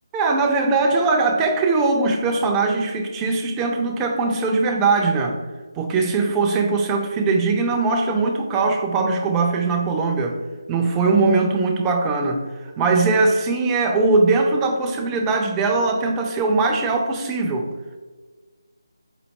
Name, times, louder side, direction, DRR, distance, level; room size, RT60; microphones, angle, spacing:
voice 1, 0.1-5.4 5.8-10.4 10.7-12.4 12.8-17.7, right 3 dB, 10° right, 2 dB, 0.3 m, -20 dB
4.1 x 2.6 x 3.1 m, 1.4 s
figure-of-eight pair, 155°, 2 cm